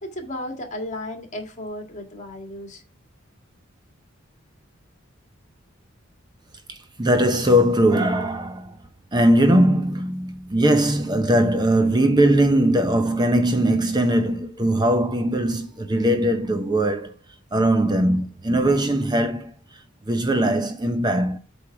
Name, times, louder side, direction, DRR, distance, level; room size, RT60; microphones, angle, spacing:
voice 1, 0.0-2.8, left 1 dB, 35° left, 2.1 m, -34 dB
voice 2, 6.7-8.8 9.1-17.1 17.5-21.4, right 1 dB, 20° right, 0.7 m, -20 dB
8.2 x 3.6 x 5.8 m
head